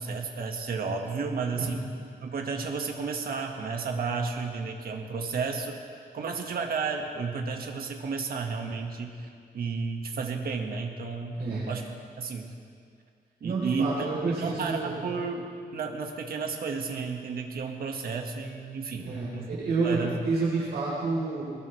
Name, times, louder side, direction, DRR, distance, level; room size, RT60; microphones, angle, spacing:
voice 1, 0.0-1.9 2.2-5.8 6.1-9.2 9.5-11.3 11.7-11.9 12.2-12.6 13.4-14.1 14.4-15.5 15.7-19.5 19.8-20.1, right 5 dB, 65° right, 3 dB, 1.7 m, -32 dB
voice 2, 11.4-11.7 13.4-15.0 18.9-19.3 19.6-21.4, right 3 dB, 90° right, -8 dB, 4.0 m, -29 dB
22.0 x 19.5 x 3.3 m, 2.2 s
wide cardioid pair, 140°, 17 cm